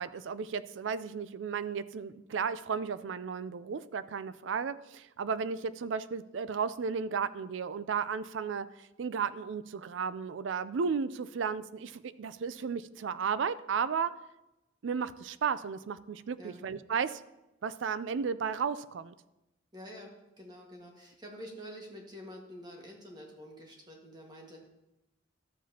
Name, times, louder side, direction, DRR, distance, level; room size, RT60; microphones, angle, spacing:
voice 1, 0.0-14.1 14.8-17.2 17.6-19.1, right 6 dB, 80° right, 15 dB, 0.4 m, -34 dB
voice 2, 19.7-20.1 20.4-24.7, equal, 20° right, 0 dB, 1.6 m, -47 dB
12.5 x 7.4 x 2.8 m, 0.95 s
head